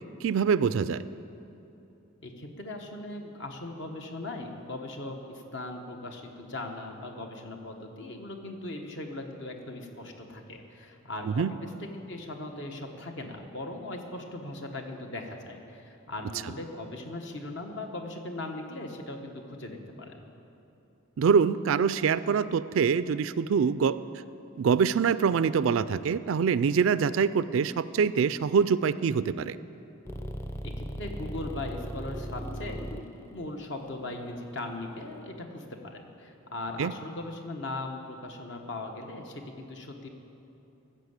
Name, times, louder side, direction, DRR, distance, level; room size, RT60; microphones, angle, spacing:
voice 1, 0.2-1.0 11.3-11.5 21.2-24.0 24.6-29.6 36.8-36.9, right 6 dB, 70° right, 16 dB, 0.3 m, -24 dB
voice 2, 2.2-20.3 30.9-40.1, left 2 dB, 55° left, 3 dB, 1.3 m, -39 dB
sound 1, 30.1-35.2, equal, 15° left, 0.6 m, -38 dB
14.5 x 6.6 x 8.1 m, 2.8 s
head